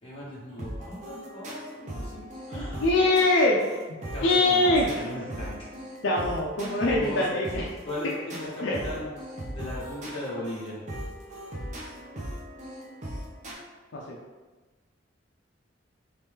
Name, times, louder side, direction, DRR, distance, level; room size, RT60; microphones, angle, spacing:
voice 1, 0.0-3.0 4.1-5.7 6.9-7.2 7.8-9.1 9.5-10.8, left 1 dB, 25° left, -8 dB, 1.2 m, -37 dB
sound 1, 0.6-13.5, equal, 35° right, 0.7 m, -39 dB
voice 2, 2.8-3.7 4.2-4.9 6.0-7.7 8.6-8.8 13.9-14.2, left 2 dB, 65° left, -3 dB, 0.4 m, -23 dB
3.1 x 3.0 x 3.5 m, 1.3 s
head